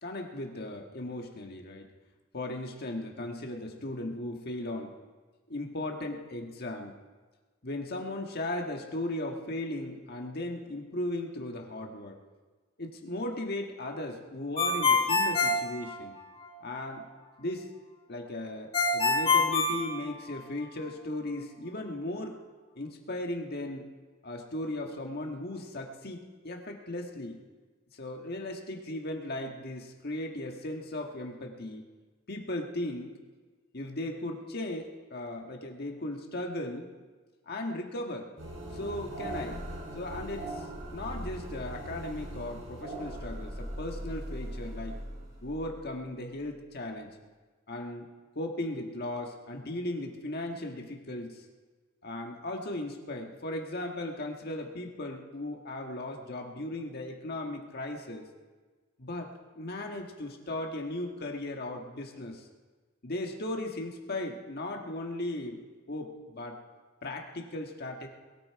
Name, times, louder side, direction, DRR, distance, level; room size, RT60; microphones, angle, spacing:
voice 1, 0.0-1.9 2.3-5.0 5.5-6.9 7.6-12.2 12.8-16.2 16.6-17.1 17.4-17.7 18.1-22.4 22.8-23.9 24.2-27.4 27.9-31.8 32.3-33.1 33.7-36.9 37.5-38.3 38.7-39.6 39.9-40.7 40.9-45.0 45.4-47.1 47.7-48.1 48.3-51.4 52.0-58.3 59.0-59.3 59.5-62.5 63.0-65.6 65.9-66.6 67.0-68.1, left 1 dB, 50° left, 2 dB, 1.5 m, -37 dB
Ringtone, 14.6-16.5 18.7-20.6, left 3 dB, 30° left, 2.1 m, -26 dB
sound 1, 38.4-46.3, right 1 dB, 75° right, 6.1 m, -40 dB
22.0 x 12.0 x 4.7 m, 1.4 s
head